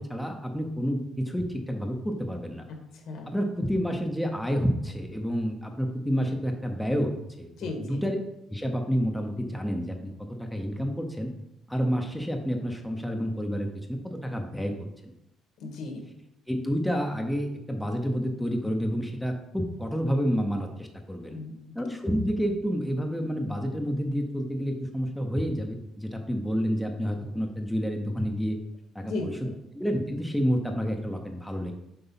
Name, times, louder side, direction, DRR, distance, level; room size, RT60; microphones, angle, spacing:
voice 1, 0.0-2.6 3.3-7.1 7.4-8.2 8.5-10.0 10.4-11.3 11.7-14.7 15.0-15.1 16.5-21.4 21.7-28.6 28.9-29.3 29.7-31.7, equal, ahead, 2 dB, 0.7 m, -29 dB
voice 2, 2.7-3.3 7.6-8.0 15.6-16.1 21.3-21.8 29.0-29.6, left 2 dB, 65° left, 3 dB, 1.8 m, -36 dB
8.0 x 4.5 x 5.7 m, 0.84 s
cardioid pair, 170°, 0 cm